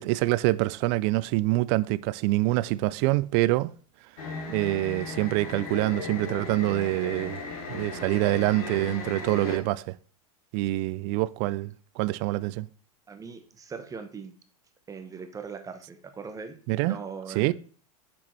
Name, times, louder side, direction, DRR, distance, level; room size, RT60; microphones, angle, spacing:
voice 1, 0.0-3.7 4.5-7.4 7.7-9.9 10.5-12.7 16.7-17.0 17.4-17.5, right 18 dB, 50° right, 0.4 m, -26 dB
sound 1, 4.2-9.6, left 4 dB, 70° left, 1.8 m, -37 dB
voice 2, 13.1-14.3 14.9-17.5, right 5 dB, 20° right, 0.9 m, -40 dB
6.2 x 5.9 x 4.4 m
hypercardioid pair, 115°, 19 cm